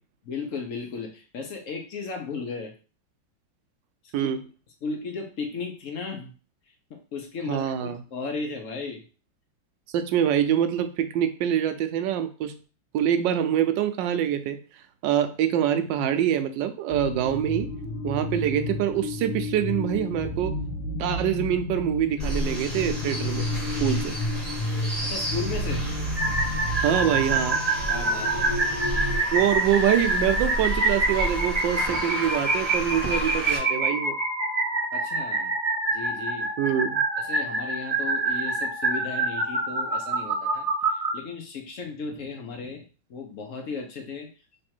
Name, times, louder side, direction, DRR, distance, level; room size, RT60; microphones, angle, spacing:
voice 1, 0.2-2.7 4.2-4.3 4.8-6.3 6.9-9.0 24.7-26.0 27.9-29.1 34.9-35.5 35.9-36.5 37.2-42.8 43.1-44.3, left 4 dB, 60° left, 4 dB, 0.9 m, -35 dB
voice 2, 7.5-8.0 9.9-12.5 12.9-14.6 15.0-17.7 18.0-20.5 21.0-23.4 23.8-24.2 26.8-27.6 29.3-34.2 36.6-37.0, right 10 dB, 75° right, 9 dB, 1.2 m, -25 dB
sound 1, 16.9-29.2, left 1 dB, 90° left, 1.5 m, -31 dB
sound 2, 22.2-33.6, right 1 dB, ahead, 1.7 m, -33 dB
sound 3, 26.2-41.1, right 2 dB, 35° right, 0.6 m, -26 dB
3.4 x 3.2 x 4.3 m, 0.36 s
omnidirectional pair, 2.1 m